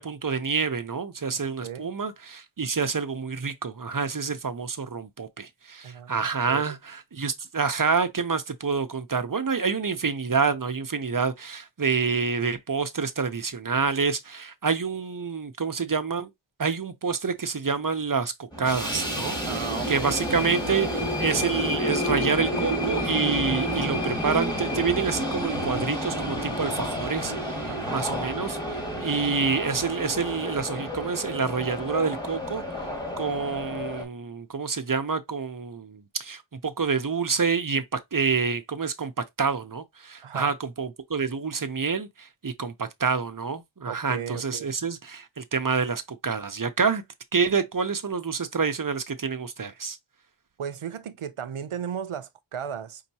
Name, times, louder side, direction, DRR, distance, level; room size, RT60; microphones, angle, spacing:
voice 1, 0.0-16.3 16.6-32.6 33.2-39.1 39.4-47.0 47.3-50.0, right 5 dB, 40° right, 0.7 m, -28 dB
voice 2, 5.8-6.8 19.5-20.2 27.7-28.0 40.2-40.5 43.9-44.7 50.6-53.0, right 8 dB, 80° right, 0.7 m, -35 dB
sound 1, 18.5-34.0, equal, 10° left, 1.8 m, -30 dB
5.4 x 2.8 x 2.8 m
wide cardioid pair, 45°, 49 cm